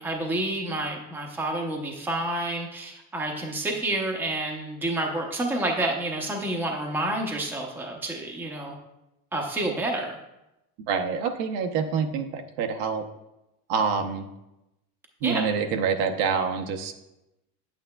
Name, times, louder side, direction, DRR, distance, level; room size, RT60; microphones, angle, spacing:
voice 1, 0.0-8.8 9.3-10.2 15.2-15.4, right 1 dB, 5° right, 0 dB, 0.7 m, -29 dB
voice 2, 10.9-13.0 13.7-14.3 15.2-16.9, right 6 dB, 65° right, 4 dB, 0.9 m, -26 dB
8.6 x 8.5 x 2.3 m, 0.91 s
supercardioid pair, 145°, 47 cm